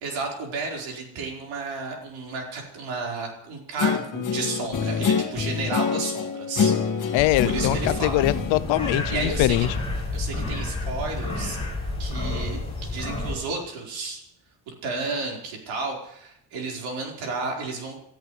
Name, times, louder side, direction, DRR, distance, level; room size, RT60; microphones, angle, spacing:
voice 1, 0.0-6.7 7.4-8.2 9.1-9.7 10.1-11.6 12.0-14.2 14.8-17.9, right 3 dB, 85° right, -1 dB, 4.6 m, -32 dB
Guitar, 3.8-9.6, left 6 dB, 40° left, 2.0 m, -27 dB
voice 2, 7.1-9.7, left 16 dB, 80° left, 16 dB, 0.6 m, -23 dB
sound 1, 7.2-13.4, left 2 dB, 15° left, 6.6 m, -30 dB
28.5 x 13.5 x 3.3 m, 0.73 s
cardioid pair, 125°, 45 cm